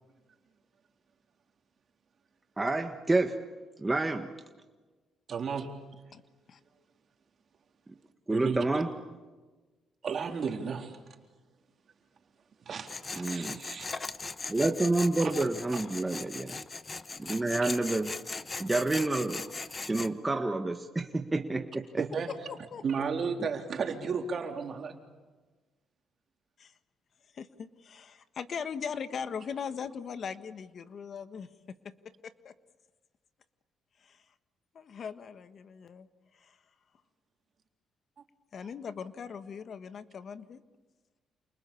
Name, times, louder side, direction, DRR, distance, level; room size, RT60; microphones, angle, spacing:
voice 1, 2.6-3.4 3.8-4.3 8.3-8.9 13.2-13.6 14.5-16.5 17.2-18.1 18.6-19.5 19.8-22.0, right 2 dB, 15° right, 5 dB, 1.5 m, -28 dB
voice 2, 5.3-5.7 8.3-8.6 10.0-11.0 12.7-13.9 22.0-22.3 22.8-25.0, right 5 dB, 50° right, 3 dB, 3.7 m, -33 dB
Tools, 12.9-20.1, left 3 dB, 30° left, 1.0 m, -39 dB
voice 3, 22.5-23.1 26.6-26.7 27.3-31.5 31.8-31.9 32.2-32.5 34.0-34.2 34.7-36.1 36.3-36.6 38.5-40.6, left 6 dB, 55° left, 11 dB, 1.4 m, -40 dB
29.5 x 28.5 x 7.1 m, 1.3 s
cardioid pair, 90°, 0 cm